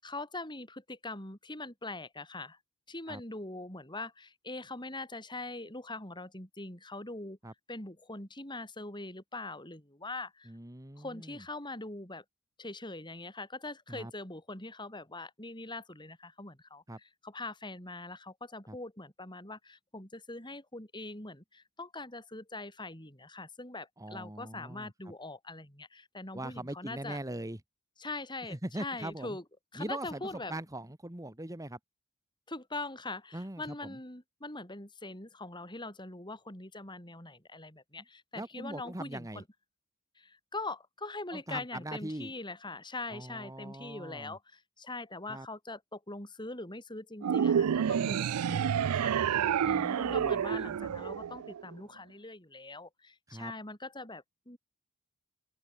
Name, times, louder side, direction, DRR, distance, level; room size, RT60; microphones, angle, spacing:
voice 1, 0.0-2.6 2.9-7.4 7.7-10.5 11.0-12.2 12.6-16.8 17.2-27.2 28.0-29.4 29.7-30.5 32.5-39.4 40.2-49.1 49.6-54.6, left 2 dB, 20° left, 6.2 m, -42 dB
voice 2, 10.5-11.4 13.9-14.1 16.9-17.0 18.7-18.8 24.0-24.9 26.3-27.6 28.5-29.4 29.7-31.8 33.3-34.0 38.3-39.4 41.3-42.3 43.1-44.4 45.3-45.5 49.6-50.4 53.3-53.5, right 1 dB, 15° right, 1.6 m, -41 dB
sound 1, 47.2-51.7, right 8 dB, 90° right, 0.4 m, -29 dB
open air
head